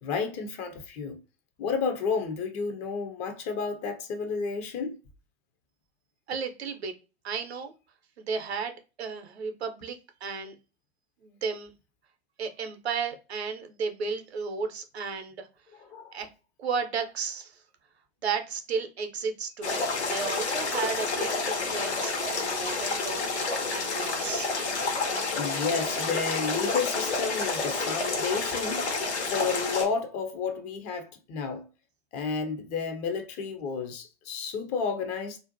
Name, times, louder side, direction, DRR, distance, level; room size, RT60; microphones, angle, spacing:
voice 1, 0.0-1.2 1.6-5.0 15.8-16.2 25.3-28.9 29.3-31.7 32.1-35.4, left 5 dB, 20° left, 0.4 m, -31 dB
voice 2, 6.3-6.9 7.2-7.7 8.2-10.5 11.2-11.7 12.4-15.5 16.1-16.3 16.6-17.6 18.2-24.5, right 5 dB, 70° right, 0.6 m, -34 dB
sound 1, 19.6-29.8, left 3 dB, 80° left, 0.9 m, -29 dB
2.5 x 2.1 x 2.5 m
figure-of-eight pair, 95°, 33 cm